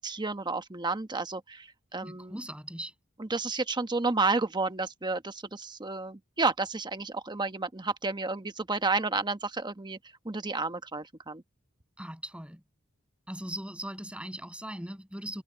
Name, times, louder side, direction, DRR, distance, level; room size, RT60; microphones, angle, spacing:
voice 1, 0.0-2.4 3.2-10.0 10.2-11.4, right 3 dB, 20° right, 1.1 m, -31 dB
voice 2, 2.0-2.9 12.0-12.6 13.3-15.4, right 1 dB, 5° right, 7.0 m, -39 dB
head